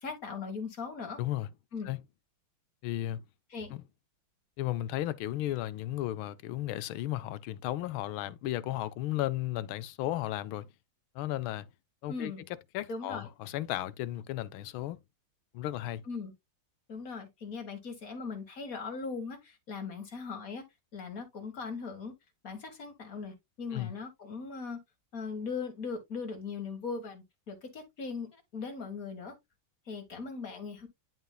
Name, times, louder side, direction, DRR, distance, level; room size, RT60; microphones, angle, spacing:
voice 1, 0.0-1.2 1.7-1.9 3.5-3.7 12.1-12.4 12.9-13.3 16.1-16.3 16.9-20.6 20.9-22.1 22.4-24.8 25.1-29.3 29.9-30.9, left 5 dB, 45° left, 2.1 m, -39 dB
voice 2, 2.8-3.2 3.7-3.8 4.6-10.7 11.1-11.7 12.0-12.3 12.7-15.0 15.5-16.0 23.7-23.9, left 14 dB, 80° left, 1.4 m, -34 dB
11.0 x 3.9 x 2.3 m
omnidirectional pair, 2.3 m